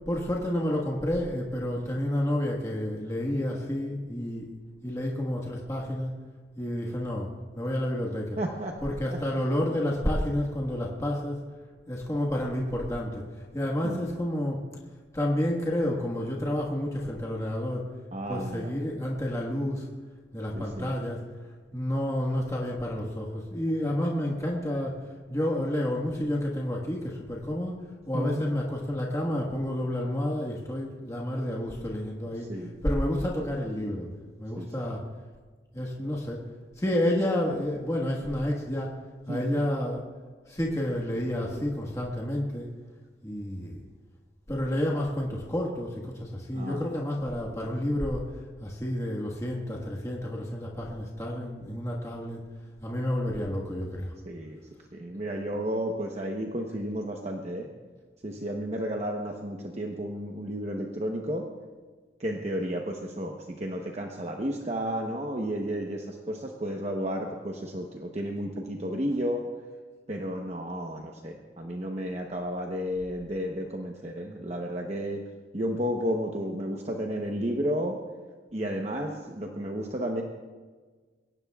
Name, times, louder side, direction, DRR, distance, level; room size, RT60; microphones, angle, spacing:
voice 1, 0.1-4.5 4.8-6.1 6.6-7.3 7.5-8.4 8.8-11.4 11.9-14.6 15.1-17.9 18.3-19.9 20.3-21.2 21.7-25.0 25.3-27.8 28.1-34.1 34.4-35.0 35.7-36.4 36.8-38.9 39.3-40.0 40.5-42.7 43.2-43.8 44.5-48.3 48.6-52.4 52.8-54.1, left 1 dB, 15° left, -2 dB, 1.5 m, -30 dB
voice 2, 8.4-8.8 9.1-9.2 13.8-14.0 18.1-18.7 20.5-20.9 28.1-28.4 32.5-32.8 34.6-34.7 39.3-39.6 46.5-46.8 54.2-54.6 54.9-57.7 58.2-61.5 62.2-69.5 70.1-75.3 75.5-78.0 78.5-80.2, equal, 35° right, 1 dB, 0.9 m, -32 dB
22.5 x 17.5 x 2.4 m, 1.4 s
head